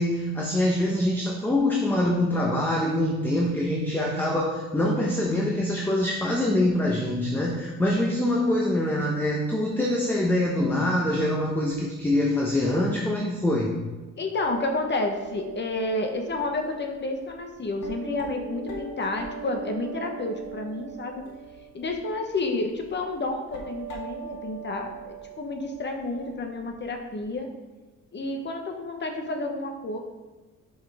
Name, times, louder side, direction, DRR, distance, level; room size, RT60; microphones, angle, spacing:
voice 1, 0.0-13.8, left 1 dB, 5° left, -2 dB, 0.8 m, -24 dB
voice 2, 14.2-21.3 21.7-27.5 28.1-30.0, left 2 dB, 35° left, 4 dB, 1.0 m, -30 dB
sound 1, 14.3-16.4 17.3-17.4 17.8-22.1 22.8-23.0 23.4-26.4 26.6-26.7 27.3-27.4, right 5 dB, 85° left, 1.1 m, -40 dB
5.6 x 5.6 x 3.4 m, 1.2 s
cardioid pair, 90°, 30 cm